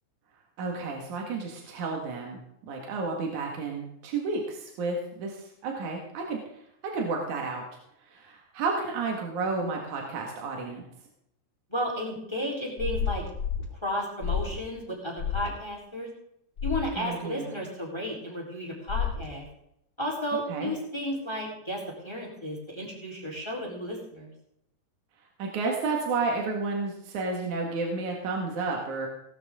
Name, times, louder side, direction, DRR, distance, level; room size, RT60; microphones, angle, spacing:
voice 1, 0.6-6.4 6.8-7.6 8.1-10.8 17.0-17.6 20.5-20.7 25.4-29.1, right 3 dB, 70° right, 0 dB, 3.2 m, -31 dB
voice 2, 11.7-13.2 13.8-16.1 16.6-19.4 20.0-24.3, equal, 10° left, -2 dB, 3.8 m, -33 dB
sound 1, 12.8-13.6 14.2-14.6 15.2-15.5 16.6-16.9 18.9-19.3, left 7 dB, 30° left, 3.1 m, -30 dB
18.0 x 12.5 x 3.7 m, 0.77 s
omnidirectional pair, 3.6 m